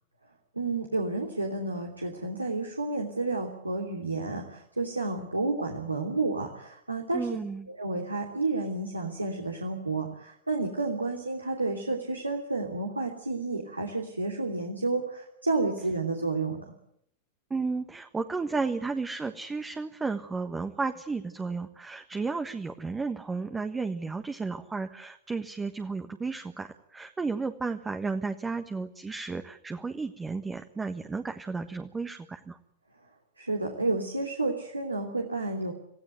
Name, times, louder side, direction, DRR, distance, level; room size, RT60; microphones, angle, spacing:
voice 1, 0.5-7.3 7.7-16.6 33.4-35.7, right 3 dB, 85° right, 1 dB, 3.1 m, -31 dB
voice 2, 7.1-7.7 17.5-32.6, right 4 dB, 15° right, 8 dB, 1.4 m, -33 dB
27.5 x 17.0 x 9.3 m, 0.74 s
figure-of-eight pair, 90°, 0 cm